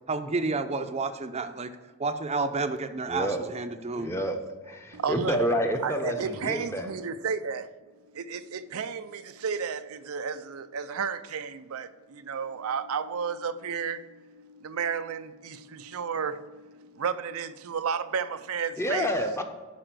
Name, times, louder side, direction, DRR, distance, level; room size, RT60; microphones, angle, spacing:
voice 1, 0.1-1.7 2.0-4.1, right 3 dB, 30° right, 0.6 m, -30 dB
voice 2, 3.1-3.5 4.0-4.4 4.6-6.9 18.8-19.4, equal, 10° left, 0.9 m, -28 dB
voice 3, 4.9-5.4 5.8-7.7 8.1-19.1, right 6 dB, 75° right, 0.5 m, -32 dB
11.5 x 4.9 x 6.1 m
head